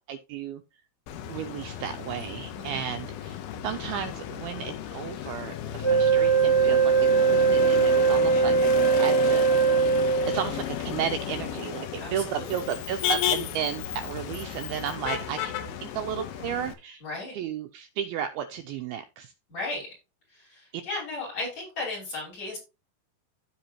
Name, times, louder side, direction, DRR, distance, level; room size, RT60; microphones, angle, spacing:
voice 1, 0.1-0.6 1.3-6.9 7.2-9.5 10.3-15.5 15.8-17.0 17.3-19.3 20.7-20.8, right 9 dB, 80° right, 7 dB, 2.2 m, -33 dB
Motor vehicle (road), 1.1-16.7, left 9 dB, 75° left, 2.7 m, -33 dB
Wind instrument woodwind instrument, 5.8-10.6, right 5 dB, 5° left, 1.1 m, -21 dB
voice 2, 12.0-12.5 17.0-17.4 19.5-19.9 20.3-22.6, left 2 dB, 40° left, -2 dB, 6.6 m, -35 dB
14.5 x 4.9 x 2.9 m, 0.28 s
omnidirectional pair, 4.8 m